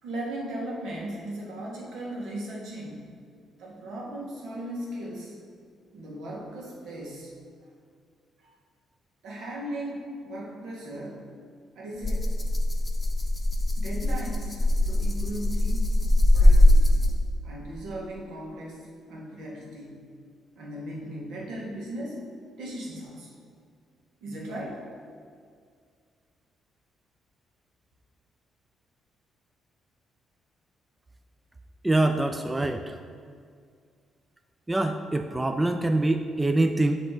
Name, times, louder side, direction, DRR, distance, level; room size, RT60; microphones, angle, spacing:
voice 1, 0.0-3.0 3.6-5.4 5.9-7.3 8.4-8.5 9.2-11.2 11.7-12.3 13.8-16.0 16.3-17.0 17.4-20.1 20.6-22.2 22.6-23.3 24.2-24.8, right 1 dB, 80° right, -4 dB, 1.7 m, -37 dB
Rattle (instrument), 12.0-17.4, left 1 dB, 15° left, 0.6 m, -21 dB
voice 2, 31.8-33.0 34.7-37.0, right 2 dB, 15° right, 6 dB, 0.3 m, -24 dB
7.3 x 3.3 x 5.1 m, 2.1 s
cardioid pair, 90°, 0 cm